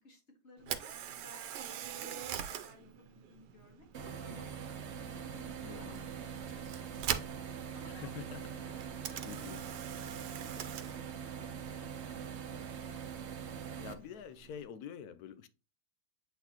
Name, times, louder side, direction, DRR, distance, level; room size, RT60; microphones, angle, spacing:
voice 1, 0.0-3.9 4.2-4.5 5.1-7.2 7.7-9.3 9.6-13.1, left 2 dB, 45° left, 2.1 m, -59 dB
Camera, 0.6-14.6, right 10 dB, 85° right, 1.3 m, -44 dB
sound 1, 3.9-13.9, right 7 dB, 55° right, 0.9 m, -43 dB
voice 2, 5.6-6.0 7.9-8.5 9.2-9.6 13.8-15.5, left 8 dB, 75° left, 1.0 m, -46 dB
8.0 x 4.1 x 2.9 m
omnidirectional pair, 1.8 m